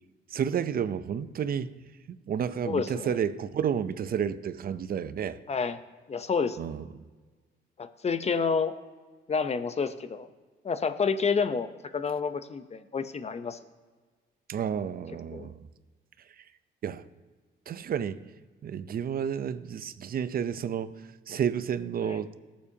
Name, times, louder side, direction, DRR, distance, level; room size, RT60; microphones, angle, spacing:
voice 1, 0.3-1.8 2.1-5.4 6.6-6.9 14.5-15.7 16.8-17.0 17.7-18.2 18.6-21.0 21.3-22.4, right 8 dB, 50° right, 0.6 m, -31 dB
voice 2, 2.7-3.1 5.5-5.8 6.1-6.6 7.8-8.7 9.3-10.3 10.6-13.6 15.3-15.5 22.0-22.2, left 5 dB, 35° left, 0.7 m, -29 dB
17.0 x 7.3 x 2.8 m
cardioid pair, 90°, 20 cm